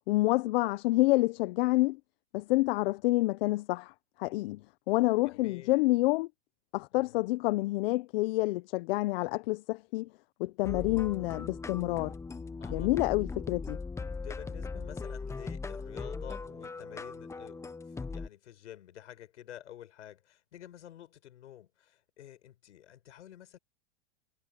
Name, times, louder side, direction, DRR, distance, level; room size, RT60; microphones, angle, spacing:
voice 1, 0.1-2.0 2.3-3.9 4.2-4.6 4.9-6.3 6.7-10.1 10.4-12.1 12.7-13.8, left 20 dB, 55° left, 1.1 m, -28 dB
voice 2, 5.2-5.7 6.9-7.2 12.6-12.9 14.0-17.7 18.1-23.6, left 11 dB, 80° left, 5.2 m, -50 dB
sound 1, 10.6-18.3, left 4 dB, 10° left, 1.0 m, -39 dB
hypercardioid pair, 125°, 35 cm